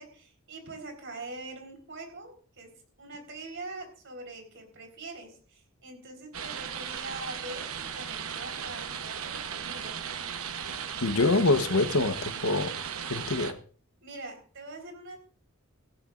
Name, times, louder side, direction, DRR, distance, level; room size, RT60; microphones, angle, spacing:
voice 1, 0.0-2.7 3.0-10.0 14.0-15.2, right 2 dB, 55° right, 4.4 m, -43 dB
sound 1, 6.3-13.5, right 7 dB, 75° right, 1.1 m, -36 dB
voice 2, 11.0-12.8 13.1-13.6, left 2 dB, 80° left, 1.1 m, -25 dB
19.0 x 15.5 x 2.6 m
head